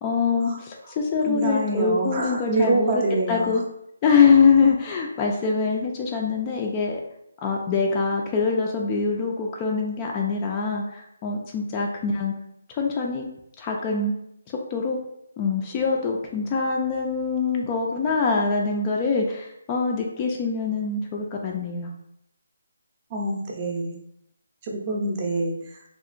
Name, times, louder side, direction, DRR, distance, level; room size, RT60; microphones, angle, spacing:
voice 1, 0.0-3.6 4.0-7.0 7.4-12.3 12.7-13.3 13.6-14.1 14.7-15.0 15.4-21.9, left 5 dB, 25° left, 0 dB, 0.3 m, -24 dB
voice 2, 1.3-3.5 23.1-24.0 24.7-25.5, right 2 dB, 30° right, -1 dB, 0.6 m, -26 dB
2.7 x 2.4 x 2.5 m, 0.78 s
figure-of-eight pair, 150°, 0 cm